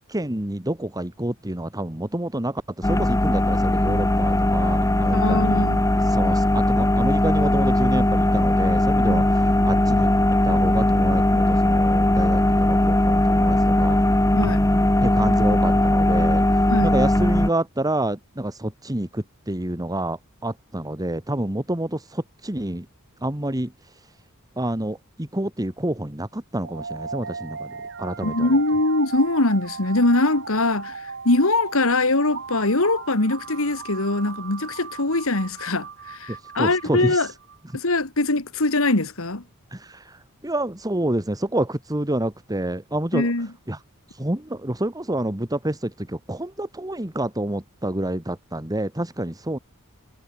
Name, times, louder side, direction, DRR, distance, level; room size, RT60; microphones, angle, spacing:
voice 1, 0.1-5.7 6.1-10.1 10.4-14.0 15.0-16.4 16.8-22.9 23.2-23.7 24.6-28.5 36.6-37.3 39.7-43.3 43.7-43.8 44.2-49.6, right 1 dB, 15° right, 1.8 m, -28 dB
sound 1, 2.8-17.5, left 1 dB, 15° left, 1.3 m, -19 dB
voice 2, 5.1-5.8 9.0-9.2 14.3-14.6 16.7-16.9 28.2-30.9 31.2-37.3 37.7-39.4 43.1-43.5, left 2 dB, 70° left, 2.4 m, -22 dB
sound 2, 26.6-37.6, right 5 dB, 60° right, 3.6 m, -37 dB
head